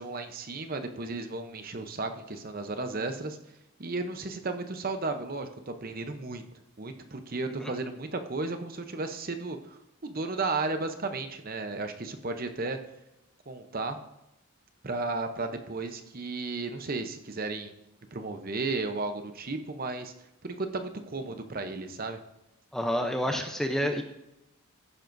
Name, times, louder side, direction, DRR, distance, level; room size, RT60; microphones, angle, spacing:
voice 1, 0.0-3.4 3.8-6.4 6.8-12.8 13.5-14.0 14.8-17.7 18.1-20.1 20.4-22.2 23.3-23.4, right 3 dB, 40° right, 7 dB, 0.8 m, -34 dB
voice 2, 22.7-24.0, equal, ahead, 4 dB, 0.6 m, -29 dB
14.0 x 10.5 x 2.6 m, 0.90 s
head